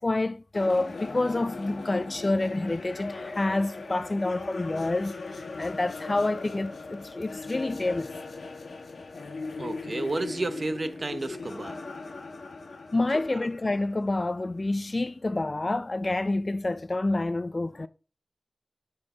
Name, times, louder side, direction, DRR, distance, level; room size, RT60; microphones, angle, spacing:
voice 1, 0.0-8.1 12.9-17.9, left 2 dB, 35° left, 0.4 m, -28 dB
sound 1, 0.5-14.7, left 3 dB, 80° left, 1.4 m, -39 dB
voice 2, 9.6-11.8 13.3-13.4, right 2 dB, 45° right, 0.8 m, -32 dB
7.5 x 4.5 x 5.5 m
wide cardioid pair, 100°, 0 cm